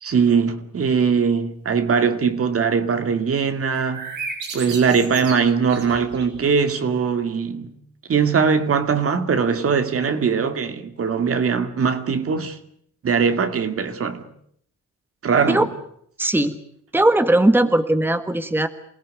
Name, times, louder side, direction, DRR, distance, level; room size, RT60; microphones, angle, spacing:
voice 1, 0.0-4.1 4.5-7.8 8.1-12.6 13.0-14.2 15.2-15.7, right 6 dB, 50° right, 2.3 m, -21 dB
sound 1, 3.7-6.4, right 4 dB, 85° right, 7.7 m, -34 dB
voice 2, 16.2-16.6 16.9-18.7, right 1 dB, 5° right, 1.5 m, -18 dB
28.0 x 17.0 x 9.5 m
cardioid pair, 90°, 30 cm